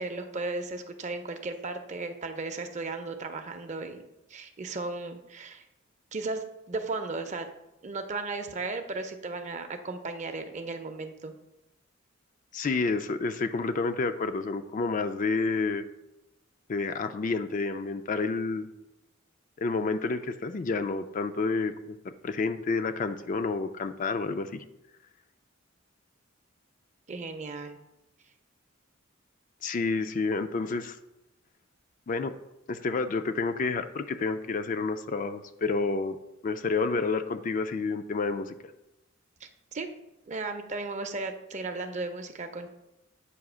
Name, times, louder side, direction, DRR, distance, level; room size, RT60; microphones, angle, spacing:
voice 1, 0.0-4.0 4.3-5.6 6.1-7.5 7.8-11.3 27.1-27.8 39.4-39.9 40.3-42.7, right 3 dB, 35° right, 7 dB, 0.6 m, -35 dB
voice 2, 12.5-15.8 16.7-18.7 19.6-24.6 29.6-31.0 32.1-32.3 32.7-36.2 36.4-38.5, left 4 dB, 40° left, 9 dB, 0.4 m, -29 dB
8.3 x 2.8 x 6.1 m, 0.93 s
head